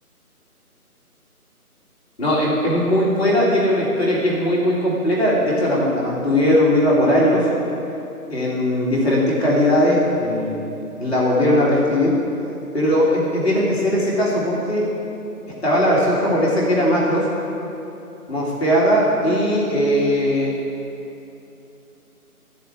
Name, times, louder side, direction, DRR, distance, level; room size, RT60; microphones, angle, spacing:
voice 1, 2.2-7.5 8.3-10.6 11.0-12.1 12.7-14.8 15.6-17.2 18.3-20.5, left 1 dB, 40° left, -6 dB, 2.3 m, -19 dB
12.0 x 4.6 x 7.9 m, 2.8 s
figure-of-eight pair, 160°, 46 cm